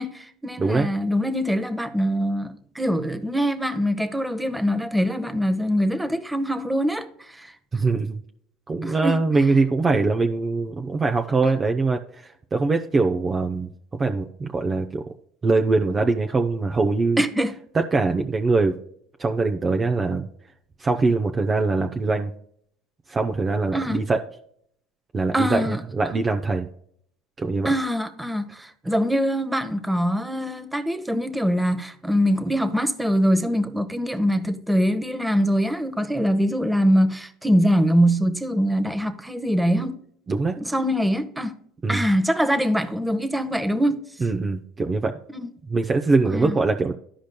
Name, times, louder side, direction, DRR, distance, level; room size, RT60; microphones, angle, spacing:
voice 1, 0.0-7.5 8.8-9.2 17.2-17.5 23.7-24.0 25.3-25.8 27.6-40.0 40.6-41.6 41.9-44.0 45.3-45.5 46.2-46.6, equal, 5° right, 0.9 m, -23 dB
voice 2, 0.6-0.9 7.7-8.2 8.7-15.0 15.4-17.2 17.8-18.8 19.2-20.3 20.8-22.3 23.1-24.2 25.1-26.7 27.4-27.7 40.3-40.6 41.8-42.0 44.2-45.2 45.7-46.9, right 3 dB, 25° right, 0.6 m, -22 dB
13.0 x 5.1 x 2.2 m
supercardioid pair, 90°, 0 cm